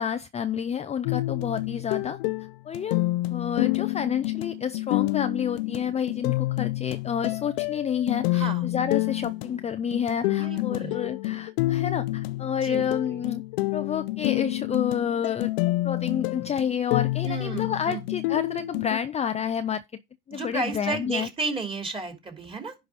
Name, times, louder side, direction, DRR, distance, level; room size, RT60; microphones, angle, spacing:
voice 1, 0.0-2.2 2.7-3.0 3.3-13.4 13.7-15.5 15.8-19.8 20.3-21.3, left 8 dB, 25° left, 0.5 m, -29 dB
sound 1, 1.0-19.0, left 19 dB, 70° left, 0.6 m, -28 dB
voice 2, 8.3-8.7 10.3-11.0 12.6-13.3 17.2-18.0 20.3-22.7, right 3 dB, 20° right, 3.0 m, -33 dB
10.5 x 4.8 x 4.7 m
hypercardioid pair, 80°, 29 cm